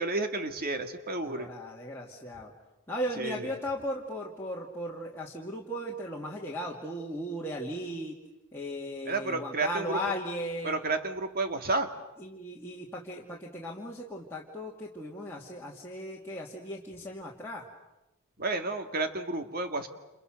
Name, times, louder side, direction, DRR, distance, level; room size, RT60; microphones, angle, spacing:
voice 1, 0.0-1.5 3.2-3.4 9.1-10.0 10.6-11.9 18.4-19.9, right 3 dB, 40° right, 6 dB, 2.3 m, -31 dB
voice 2, 1.2-2.5 2.9-8.2 8.5-10.8 12.2-17.7, equal, 10° left, -5 dB, 2.7 m, -37 dB
29.5 x 29.0 x 6.7 m, 0.97 s
head